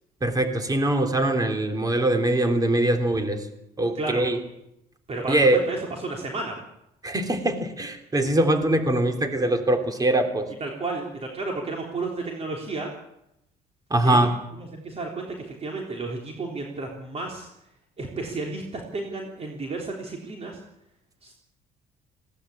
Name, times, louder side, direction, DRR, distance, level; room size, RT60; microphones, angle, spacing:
voice 1, 0.2-3.4 3.8-4.4 5.3-5.6 7.0-10.5 13.9-14.3, right 1 dB, 20° right, 6 dB, 3.2 m, -22 dB
voice 2, 5.1-6.6 10.6-12.9 14.0-17.5 18.0-20.6 21.2-21.4, right 3 dB, 35° right, 0 dB, 3.6 m, -32 dB
20.0 x 17.0 x 8.5 m, 0.82 s
cardioid pair, 110°, 17 cm